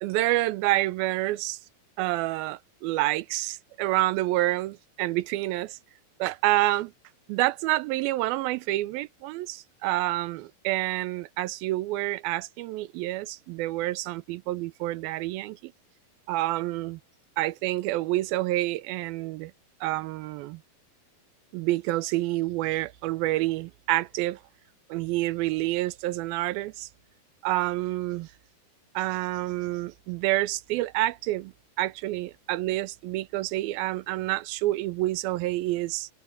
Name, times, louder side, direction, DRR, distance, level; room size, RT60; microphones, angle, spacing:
voice 1, 0.0-1.6 2.0-5.8 6.2-6.9 7.3-15.7 16.3-17.0 17.4-19.5 19.8-20.6 21.5-24.4 24.9-26.9 27.4-28.3 29.0-31.5 31.8-36.1, right 17 dB, 80° right, 2.5 m, -28 dB
omnidirectional pair, 4.3 m